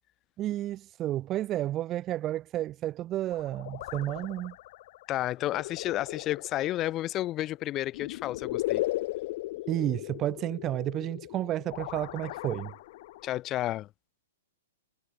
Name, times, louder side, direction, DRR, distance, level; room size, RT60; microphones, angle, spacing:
voice 1, 0.4-4.6 9.7-12.7, right 13 dB, 30° right, 2.9 m, -31 dB
sound 1, 3.3-13.4, left 18 dB, 50° left, 1.2 m, -37 dB
voice 2, 5.1-8.8 13.2-13.9, left 14 dB, 30° left, 1.9 m, -31 dB
hypercardioid pair, 115°, 0 cm